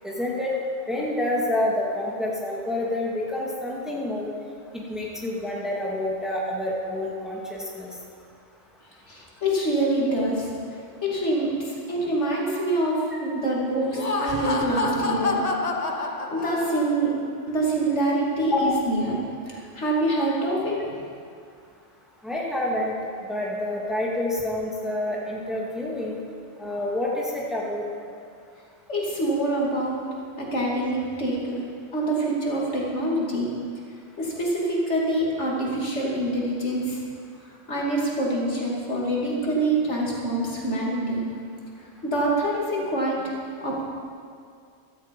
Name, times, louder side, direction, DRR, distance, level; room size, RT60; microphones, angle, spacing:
voice 1, 0.0-0.5 0.9-4.3 4.7-7.9 13.1-13.2 18.5-18.8 22.2-22.9 23.3-26.2 26.6-27.8, left 1 dB, ahead, -3 dB, 2.1 m, -28 dB
voice 2, 9.1-10.5 11.0-15.4 16.0-17.2 17.5-19.2 19.5-21.0 28.9-30.0 30.4-31.6 31.9-33.5 34.2-37.0 37.7-41.2 42.0-43.2 43.6-43.8, right 1 dB, 70° left, -4 dB, 2.9 m, -25 dB
Laughter, 13.8-17.1, left 3 dB, 35° left, 1.0 m, -28 dB
16.0 x 13.0 x 5.3 m, 2.3 s
omnidirectional pair, 1.2 m